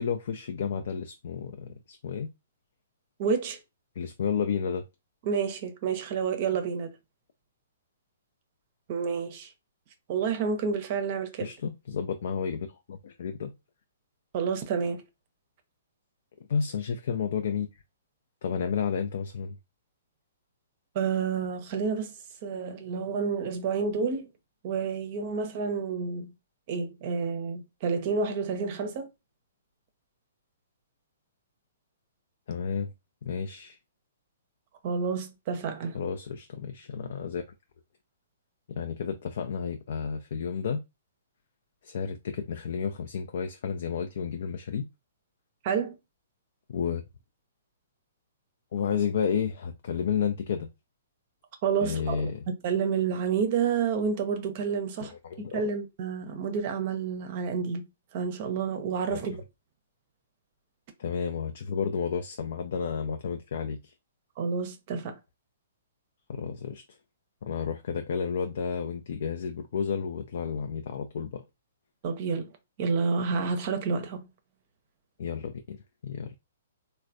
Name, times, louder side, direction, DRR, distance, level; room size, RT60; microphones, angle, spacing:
voice 1, 0.0-2.3 4.0-4.9 11.4-13.5 16.5-17.7 18.4-19.6 32.5-32.9 33.2-33.8 35.9-37.4 38.7-40.8 41.8-44.9 46.7-47.0 48.7-50.7 51.8-52.4 55.0-55.7 59.1-59.3 61.0-63.9 66.3-66.8 67.4-71.4 75.2-76.3, left 6 dB, 60° left, 0.3 m, -31 dB
voice 2, 3.2-3.6 5.3-6.9 8.9-9.5 10.1-11.5 14.3-15.0 20.9-22.1 22.4-24.3 24.6-26.3 26.7-29.1 34.8-36.0 45.6-45.9 51.6-52.3 52.6-55.1 55.5-57.8 58.1-59.4 64.4-65.2 72.0-72.5 72.8-74.3, right 6 dB, 45° right, 0.5 m, -29 dB
3.1 x 2.1 x 2.4 m
figure-of-eight pair, 120°, 0 cm